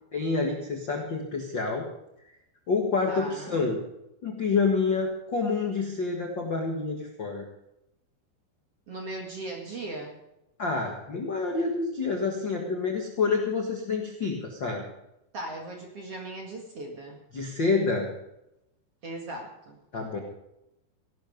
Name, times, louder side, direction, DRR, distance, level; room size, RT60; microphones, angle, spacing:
voice 1, 0.1-1.9 2.7-3.8 4.2-7.5 10.6-14.8 17.3-18.1 19.9-20.2, left 4 dB, 60° left, 1 dB, 1.2 m, -28 dB
voice 2, 3.1-3.6 8.9-10.2 15.3-17.2 19.0-19.8, right 2 dB, 45° right, 1 dB, 2.2 m, -38 dB
16.5 x 12.0 x 5.2 m, 0.87 s
omnidirectional pair, 5.0 m